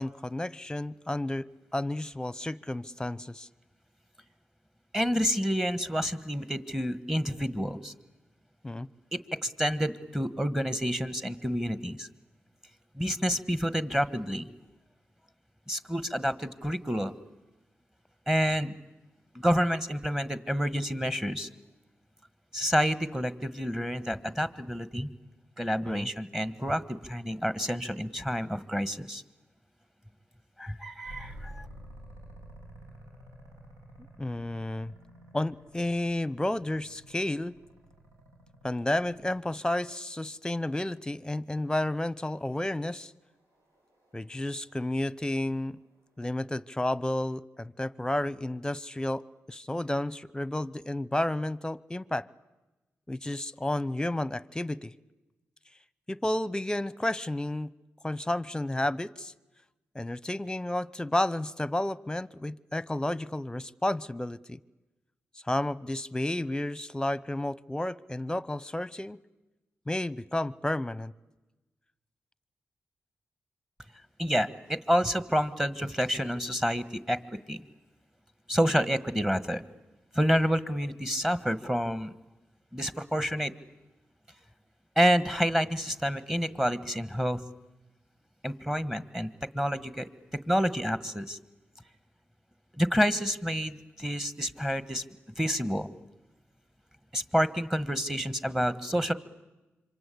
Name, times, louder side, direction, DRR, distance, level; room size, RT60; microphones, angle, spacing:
voice 1, 0.0-1.5 1.7-3.5 8.6-8.9 25.8-26.1 34.2-34.9 35.3-37.6 38.6-43.1 44.1-45.8 46.2-52.3 53.1-54.9 56.1-57.7 58.0-59.3 59.9-64.6 65.4-69.2 69.9-71.1, left 1 dB, 15° left, 20 dB, 0.9 m, -31 dB
voice 2, 4.9-7.9 9.1-12.1 13.0-14.5 15.7-17.1 18.3-18.7 19.3-21.5 22.5-25.1 25.6-29.2 30.6-31.6 74.2-77.2 77.5-77.6 78.5-79.6 80.1-82.1 82.7-83.5 85.0-87.4 88.4-91.4 92.8-95.0 95.4-95.9 97.1-99.1, equal, 10° right, 14 dB, 1.5 m, -28 dB
sound 1, 31.0-39.6 41.9-46.4, right 1 dB, 90° right, 7.1 m, -51 dB
26.5 x 24.5 x 8.5 m, 1.1 s
cardioid pair, 60°, 5 cm